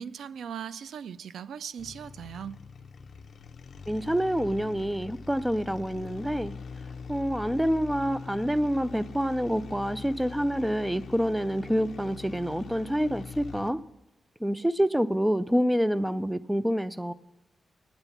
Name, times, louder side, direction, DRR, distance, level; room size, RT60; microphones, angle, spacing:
voice 1, 0.0-2.6, right 8 dB, 85° right, 16 dB, 0.4 m, -39 dB
sound 1, 1.8-13.9, left 5 dB, 50° left, 0.7 m, -43 dB
voice 2, 3.9-6.5 7.1-13.8 14.4-17.1, equal, 5° right, 15 dB, 0.3 m, -27 dB
9.0 x 8.8 x 6.9 m, 1.0 s
wide cardioid pair, 160°, 0 cm